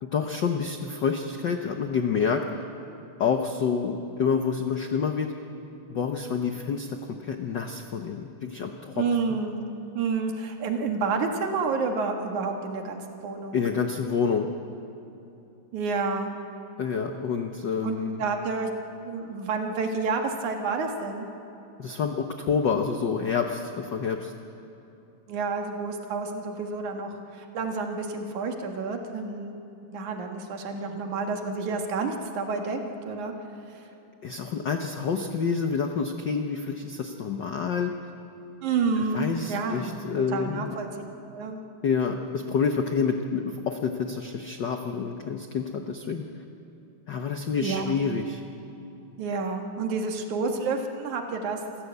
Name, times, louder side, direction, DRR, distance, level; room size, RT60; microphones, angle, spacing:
voice 1, 0.0-2.4 3.2-5.3 5.9-9.0 13.5-14.5 16.8-18.2 21.8-24.3 34.2-37.9 39.1-40.8 41.8-46.3 47.1-48.4, left 6 dB, 70° left, 5 dB, 1.0 m, -28 dB
voice 2, 8.9-9.7 9.9-13.6 15.7-16.3 17.8-18.7 19.0-21.3 25.3-29.5 29.9-33.3 33.7-33.8 38.6-39.9 40.2-40.9 41.3-41.6 47.6-48.0 49.2-51.6, right 4 dB, 80° right, 4 dB, 3.1 m, -29 dB
27.5 x 15.5 x 8.1 m, 2.9 s
omnidirectional pair, 3.4 m